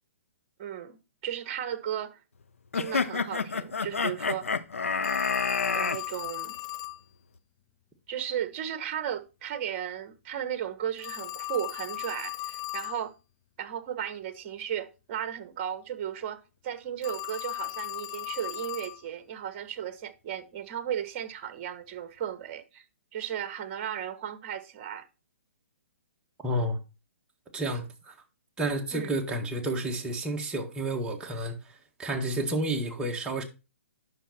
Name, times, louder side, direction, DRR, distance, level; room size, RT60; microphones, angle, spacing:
voice 1, 0.6-1.0 1.2-2.2 2.7-4.5 5.7-6.5 8.1-13.1 13.6-22.8 23.1-25.0 28.9-29.1, right 10 dB, 40° right, 1.3 m, -35 dB
sound 1, 2.7-6.0, left 5 dB, 85° left, 0.7 m, -28 dB
Telephone, 5.0-7.0 11.0-13.0 17.0-19.0, left 17 dB, 35° left, 0.5 m, -37 dB
voice 2, 26.4-26.8 27.5-28.1 28.6-33.4, right 1 dB, 10° right, 1.7 m, -30 dB
9.9 x 6.2 x 4.3 m
hypercardioid pair, 130°, 7 cm